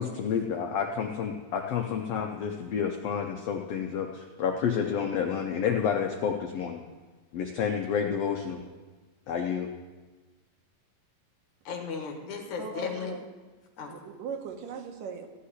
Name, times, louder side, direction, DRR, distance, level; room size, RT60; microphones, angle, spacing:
voice 1, 0.0-6.8 7.3-8.6 9.3-9.7, left 7 dB, 80° left, 3 dB, 1.4 m, -29 dB
voice 2, 11.7-13.2 13.8-13.9, left 6 dB, 60° left, 2 dB, 2.6 m, -35 dB
voice 3, 12.6-13.2 13.9-15.3, right 6 dB, 75° right, 3 dB, 2.7 m, -39 dB
15.5 x 5.7 x 9.8 m, 1.3 s
omnidirectional pair, 4.0 m